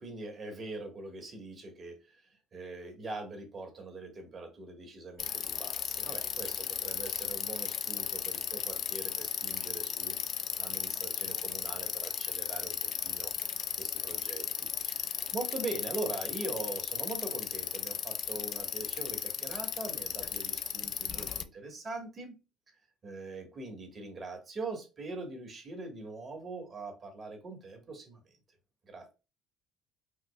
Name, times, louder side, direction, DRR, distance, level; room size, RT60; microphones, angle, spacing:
voice 1, 0.0-10.2 10.6-22.4 23.0-28.3 28.9-29.1, right 2 dB, 40° right, 1.5 m, -42 dB
Bicycle, 5.2-21.4, left 8 dB, 55° left, 0.4 m, -35 dB
5.1 x 2.1 x 2.3 m
supercardioid pair, 75°, 0 cm